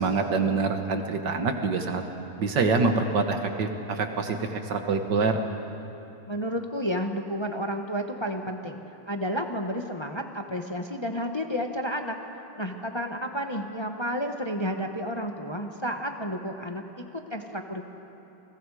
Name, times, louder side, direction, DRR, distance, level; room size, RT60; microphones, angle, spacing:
voice 1, 0.0-2.0 2.4-5.4, right 4 dB, 55° right, 6 dB, 1.7 m, -25 dB
voice 2, 6.3-12.2 12.6-16.8 17.1-17.8, equal, 25° left, 4 dB, 0.6 m, -31 dB
29.5 x 22.5 x 4.9 m, 2.9 s
omnidirectional pair, 2.4 m